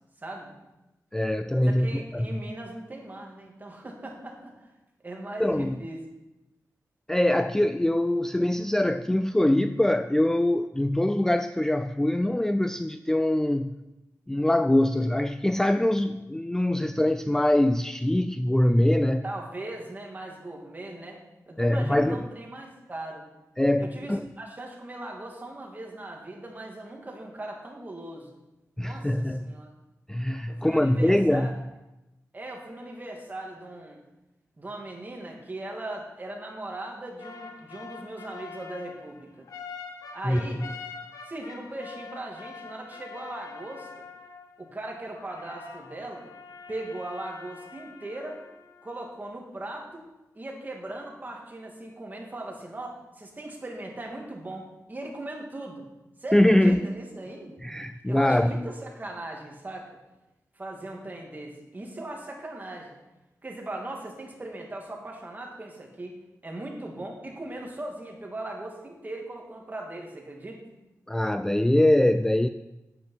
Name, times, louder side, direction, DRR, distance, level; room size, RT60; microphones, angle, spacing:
voice 1, 0.2-0.5 1.6-4.5 5.0-6.1 19.2-21.2 21.5-23.2 23.8-28.3 28.8-29.7 30.5-31.6 32.3-34.0 34.6-39.5 40.1-40.7 41.3-44.1 44.6-46.3 46.7-48.4 48.8-50.1 50.3-55.8 56.2-57.6 58.1-59.9 60.6-62.9 63.4-66.1 66.4-70.6, right 1 dB, 30° right, 0 dB, 2.4 m, -39 dB
voice 2, 1.1-2.4 5.4-5.8 7.1-13.7 14.3-19.2 21.6-22.2 23.6-24.3 28.8-29.5 30.1-31.5 40.2-40.4 56.3-56.8 57.6-58.5 71.1-72.5, left 1 dB, 10° left, 10 dB, 0.3 m, -23 dB
sound 1, 37.2-44.7 45.1-49.2, left 5 dB, 80° left, 1.2 m, -44 dB
9.3 x 8.7 x 5.6 m, 0.99 s
wide cardioid pair, 85°, 6 cm